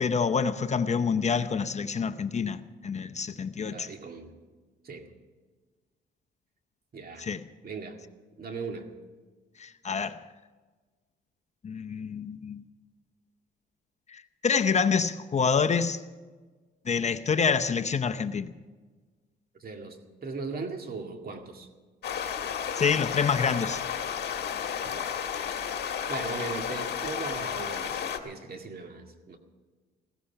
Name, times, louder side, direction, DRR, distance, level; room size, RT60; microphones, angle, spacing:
voice 1, 0.0-3.9 7.2-7.4 9.6-10.2 11.6-12.6 14.1-16.0 16.9-18.5 22.8-23.8, left 6 dB, 35° left, 0.7 m, -27 dB
voice 2, 3.6-4.3 4.8-5.1 6.9-7.3 7.6-8.0 8.4-8.9 19.6-21.7 24.8-25.2 26.1-29.4, right 4 dB, 50° right, 2.1 m, -38 dB
sound 1, 22.0-28.2, left 8 dB, 60° left, 1.6 m, -32 dB
16.0 x 14.5 x 5.7 m
cardioid pair, 90°, 20 cm